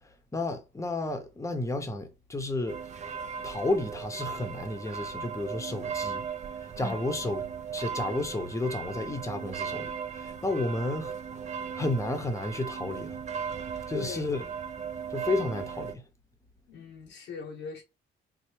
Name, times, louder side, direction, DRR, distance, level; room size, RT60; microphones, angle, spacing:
voice 1, 0.0-2.8 3.4-6.2 6.6-7.4 7.7-11.2 11.7-13.2 13.9-14.5 15.1-16.1, left 2 dB, 15° left, 0.8 m, -32 dB
sound 1, 2.7-15.9, right 7 dB, 35° right, 0.4 m, -37 dB
voice 2, 13.9-14.3 16.7-17.8, left 4 dB, 85° left, 0.8 m, -39 dB
3.2 x 2.1 x 3.1 m
cardioid pair, 90°, 20 cm